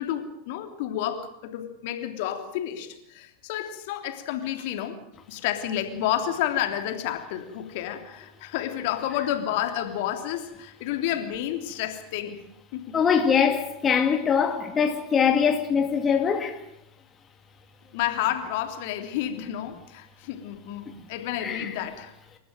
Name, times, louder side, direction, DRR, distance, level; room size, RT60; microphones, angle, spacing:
voice 1, 0.0-5.0 5.3-12.4 12.7-13.0 17.9-22.1, left 11 dB, 55° left, 3.2 m, -30 dB
voice 2, 12.9-16.6 21.4-21.7, left 7 dB, 25° left, 2.2 m, -22 dB
29.0 x 14.5 x 9.2 m
figure-of-eight pair, 90°, 0 cm